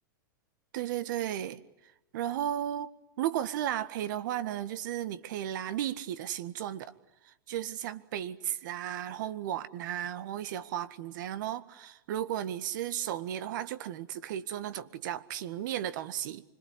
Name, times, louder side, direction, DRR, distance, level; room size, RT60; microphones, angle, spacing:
voice 1, 0.7-1.6 2.1-2.9 3.2-6.9 7.2-16.4, right 11 dB, 65° right, 14 dB, 1.7 m, -34 dB
25.5 x 22.5 x 9.8 m, 0.90 s
hypercardioid pair, 120°, 11 cm